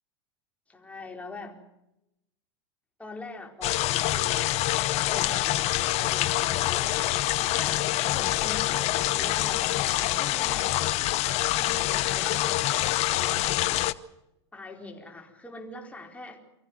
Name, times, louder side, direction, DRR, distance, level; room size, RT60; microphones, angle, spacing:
voice 1, 0.7-1.6 3.0-4.5 4.9-6.9 7.3-10.7 11.5-12.9 14.5-16.4, left 3 dB, 10° left, 2 dB, 4.5 m, -43 dB
sound 1, 3.6-13.9, left 16 dB, 50° left, 0.9 m, -26 dB
25.0 x 14.5 x 9.4 m, 0.88 s
hypercardioid pair, 105°, 14 cm